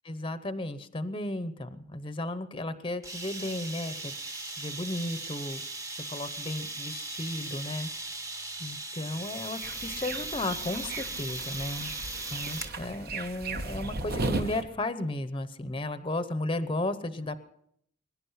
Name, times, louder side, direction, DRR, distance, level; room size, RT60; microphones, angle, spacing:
voice 1, 0.0-4.1 4.6-5.6 5.9-7.9 8.6-11.9 12.3-17.4, left 1 dB, 25° left, 12 dB, 0.8 m, -34 dB
sound 1, 3.0-12.8, right 2 dB, 15° right, 1.1 m, -38 dB
sound 2, 9.6-14.6, right 2 dB, 50° right, 1.2 m, -36 dB
22.5 x 11.0 x 5.7 m, 0.71 s
head